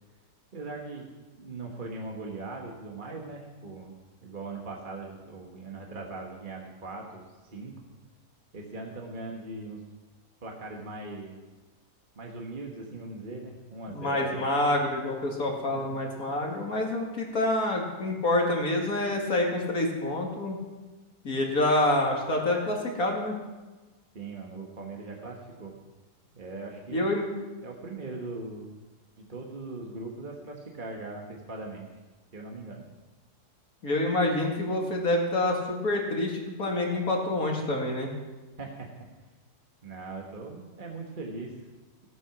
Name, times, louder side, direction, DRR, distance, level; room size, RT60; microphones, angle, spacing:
voice 1, 0.5-1.1 1.4-7.2 7.5-7.7 8.5-9.8 10.4-11.4 12.1-14.5 15.7-16.0 24.1-25.8 26.3-27.1 27.6-28.7 29.2-31.9 32.3-32.8 38.6-38.9 39.8-41.5, right 3 dB, 30° right, 0 dB, 1.6 m, -40 dB
voice 2, 13.9-20.6 21.2-23.4 26.9-27.2 33.8-38.1, left 1 dB, 65° left, 0 dB, 2.6 m, -27 dB
16.5 x 9.6 x 6.0 m, 1.2 s
omnidirectional pair, 1.7 m